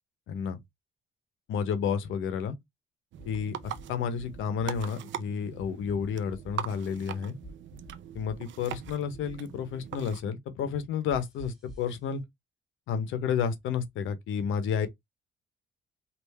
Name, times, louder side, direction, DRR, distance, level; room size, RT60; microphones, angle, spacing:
voice 1, 0.3-0.6 1.5-2.5 3.2-3.5 3.9-7.4 8.1-12.2 12.9-14.9, left 7 dB, 85° left, 0.7 m, -31 dB
sound 1, 3.1-10.2, right 11 dB, 70° right, 0.5 m, -42 dB
sound 2, 3.2-3.8 4.2-4.8 5.6-6.5 7.4-8.4 8.7-9.4 11.1-11.9, equal, ahead, 1.4 m, -48 dB
3.4 x 2.4 x 3.2 m
cardioid pair, 90°, 20 cm